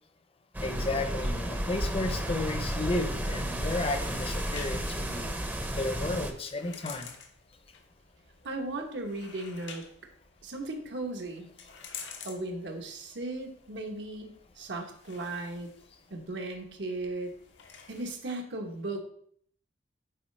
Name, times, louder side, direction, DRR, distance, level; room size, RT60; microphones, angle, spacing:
sound 1, 0.5-6.3, equal, 10° right, 0.6 m, -32 dB
voice 1, 0.6-7.2, left 2 dB, 30° left, 7 dB, 0.6 m, -33 dB
sound 2, 3.2-18.2, left 6 dB, 90° left, 0.9 m, -51 dB
voice 2, 8.4-9.9 10.4-11.5 12.2-15.7 16.1-17.3 17.9-19.0, right 2 dB, 75° right, 3 dB, 1.1 m, -36 dB
9.0 x 4.0 x 3.2 m, 0.63 s
head